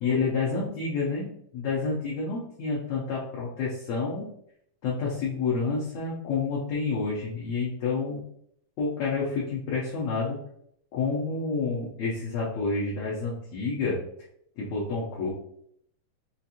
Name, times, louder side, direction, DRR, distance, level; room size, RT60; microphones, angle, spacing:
voice 1, 0.0-4.3 4.8-8.2 8.8-10.4 10.9-14.0 14.6-15.3, left 4 dB, 75° left, -6 dB, 1.6 m, -29 dB
5.4 x 2.5 x 2.8 m, 0.69 s
omnidirectional pair, 4.0 m